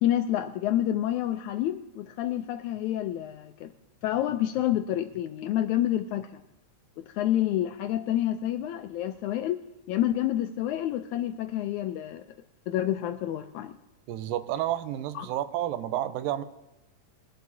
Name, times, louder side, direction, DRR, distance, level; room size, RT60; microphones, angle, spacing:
voice 1, 0.0-3.7 4.0-6.4 7.0-9.6 9.9-12.2 12.7-13.7 15.1-15.3, left 12 dB, 85° left, 7 dB, 1.7 m, -28 dB
voice 2, 14.1-16.4, right 12 dB, 90° right, 12 dB, 2.4 m, -30 dB
22.5 x 11.5 x 2.7 m, 0.98 s
omnidirectional pair, 3.9 m